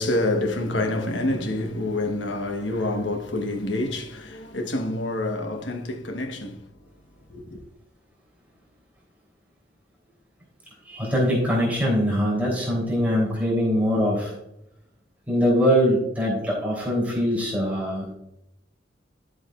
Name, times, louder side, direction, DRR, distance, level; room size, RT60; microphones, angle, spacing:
voice 1, 0.0-6.6 7.3-7.6, left 2 dB, 90° left, 1.2 m, -27 dB
voice 2, 10.8-14.4 15.3-18.1, equal, 10° right, 3.3 m, -22 dB
12.5 x 7.6 x 2.4 m
head